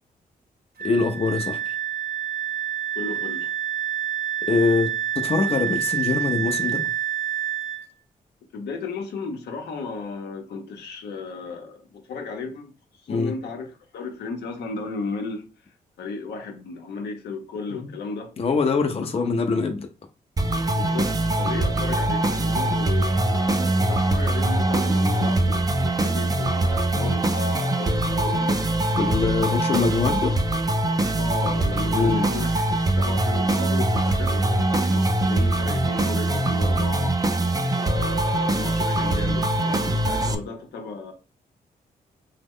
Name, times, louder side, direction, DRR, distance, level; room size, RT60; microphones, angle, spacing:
voice 1, 0.8-1.7 4.5-6.8 13.1-13.3 17.7-17.9 18.4-19.9 29.0-30.4 31.9-32.3, left 4 dB, 35° left, 0.5 m, -23 dB
Wind instrument woodwind instrument, 0.8-7.8, right 11 dB, 65° right, 0.6 m, -28 dB
voice 2, 3.0-3.5 8.5-12.7 13.0-13.7 13.9-15.4 16.0-18.3 19.1-19.2 20.7-28.6 31.2-37.2 37.7-41.1, left 4 dB, 80° left, 0.7 m, -34 dB
sound 1, 20.4-40.3, right 2 dB, 20° right, 0.4 m, -23 dB
3.0 x 2.0 x 3.6 m
cardioid pair, 60°, 17 cm